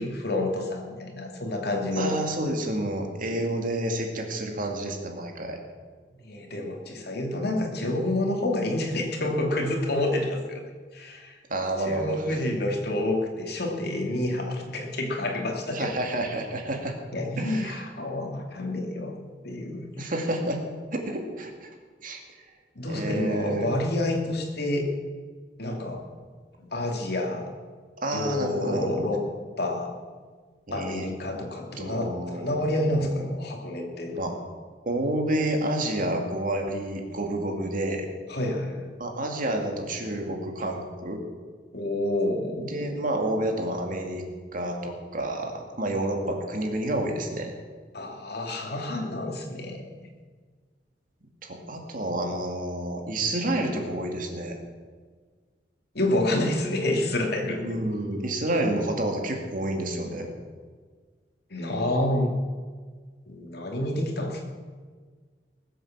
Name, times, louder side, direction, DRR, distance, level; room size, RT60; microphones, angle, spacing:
voice 1, 0.0-2.2 6.2-10.6 10.9-11.4 11.8-15.9 17.1-19.2 19.4-19.9 22.7-24.9 25.6-26.0 26.6-27.5 28.1-29.2 29.6-30.0 30.7-34.2 38.3-38.9 41.7-43.0 47.9-50.1 55.9-57.6 61.5-62.3 63.3-64.4, left 1 dB, 65° left, 1 dB, 2.7 m, -28 dB
voice 2, 2.0-5.6 11.5-12.4 15.7-17.0 17.4-17.8 20.0-20.6 20.9-21.7 22.0-22.2 22.9-23.7 28.0-28.9 30.7-31.1 31.8-33.3 34.2-34.3 34.9-38.1 39.0-41.2 42.6-44.2 44.5-47.5 51.4-54.6 57.5-60.3, right 1 dB, 50° right, 3 dB, 2.4 m, -29 dB
20.0 x 7.9 x 7.4 m, 1.6 s
head